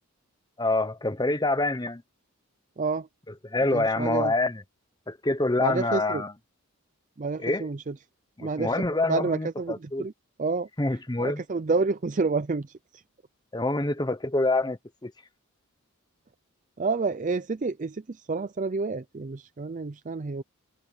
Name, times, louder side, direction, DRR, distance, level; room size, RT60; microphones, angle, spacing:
voice 1, 0.6-2.0 3.4-4.6 5.1-6.3 7.4-7.7 8.4-10.1 10.8-11.4 13.5-15.1, left 2 dB, 20° left, 0.9 m, -26 dB
voice 2, 2.8-3.1 3.7-4.3 5.6-6.2 7.2-7.9 8.4-8.8 9.1-10.1 10.4-10.7 11.2-13.0 16.8-20.4, right 4 dB, 35° right, 0.4 m, -29 dB
head